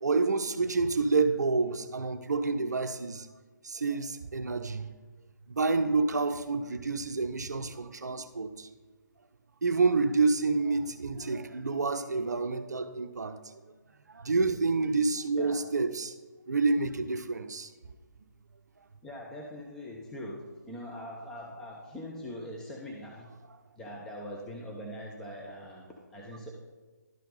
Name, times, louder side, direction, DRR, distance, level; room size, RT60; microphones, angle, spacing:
voice 1, 0.0-3.3 3.6-4.9 5.5-8.7 9.6-13.6 14.1-16.1 16.5-17.7, right 4 dB, 65° right, 0.5 m, -28 dB
voice 2, 19.0-23.3 23.8-26.5, equal, 5° left, 0.6 m, -42 dB
11.5 x 4.2 x 4.0 m
figure-of-eight pair, 145°, 10 cm